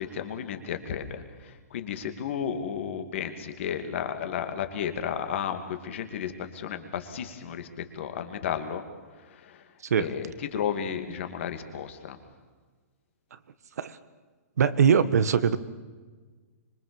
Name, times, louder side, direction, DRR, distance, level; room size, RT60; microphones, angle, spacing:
voice 1, 0.0-7.7 7.9-8.8 9.4-9.6 10.0-12.2, left 8 dB, 50° left, 7 dB, 2.7 m, -33 dB
voice 2, 14.6-15.6, right 7 dB, 75° right, 13 dB, 1.6 m, -22 dB
25.5 x 23.0 x 7.3 m, 1.4 s
hypercardioid pair, 165°, 9 cm